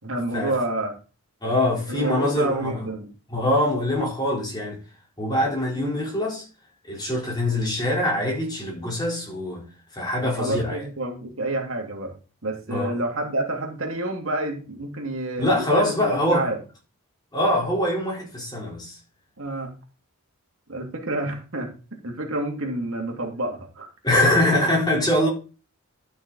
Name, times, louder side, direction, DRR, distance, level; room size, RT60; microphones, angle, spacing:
voice 1, 0.0-0.9 1.9-3.1 5.7-6.0 10.2-12.1 12.4-16.6 19.4-19.7 20.7-23.9, right 1 dB, 70° right, 2.4 m, -29 dB
voice 2, 1.4-2.8 3.3-4.8 5.2-6.4 6.9-9.7 9.9-10.8 12.7-12.9 15.4-16.5 17.3-19.0 24.0-25.3, left 1 dB, 20° left, 3.9 m, -23 dB
12.0 x 6.0 x 4.1 m
head